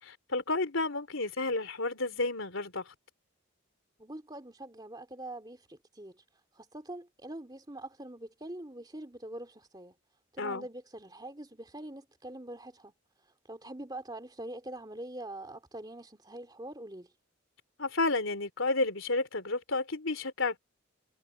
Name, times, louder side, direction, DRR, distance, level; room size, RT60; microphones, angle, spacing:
voice 1, 0.0-2.9 10.4-10.7 17.8-20.6, left 3 dB, 75° left, 3.3 m, -31 dB
voice 2, 4.0-6.2 6.5-9.9 10.3-12.9 13.5-17.1, right 1 dB, 20° right, 2.8 m, -44 dB
head